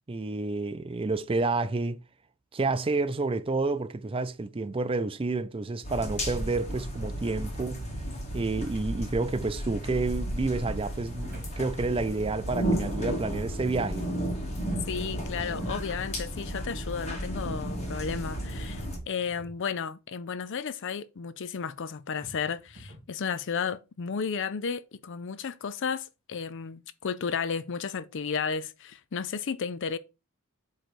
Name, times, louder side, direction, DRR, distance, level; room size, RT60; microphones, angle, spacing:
voice 1, 0.1-2.0 2.5-7.9 8.3-14.1, right 3 dB, 25° right, 0.4 m, -29 dB
sound 1, 5.8-19.0, equal, 30° left, 1.7 m, -33 dB
sound 2, 10.7-11.6 14.7-15.6 18.7-19.6 22.2-23.1, equal, 40° right, 2.9 m, -48 dB
voice 2, 14.9-30.0, left 6 dB, 55° left, 0.5 m, -33 dB
7.8 x 3.2 x 4.2 m
head